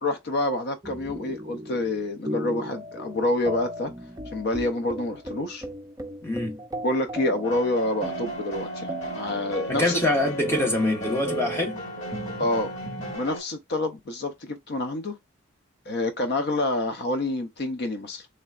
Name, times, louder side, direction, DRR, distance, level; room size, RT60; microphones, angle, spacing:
voice 1, 0.0-3.9 4.3-5.7 6.8-10.0 12.4-12.7 13.1-15.2 15.9-18.3, left 2 dB, 50° left, 0.5 m, -27 dB
sound 1, 0.8-13.2, right 1 dB, 15° right, 0.4 m, -37 dB
voice 2, 6.2-6.6 9.7-11.8, left 1 dB, 10° left, 0.9 m, -25 dB
sound 2, 7.4-13.4, equal, 75° left, 2.3 m, -35 dB
3.7 x 3.2 x 2.3 m
head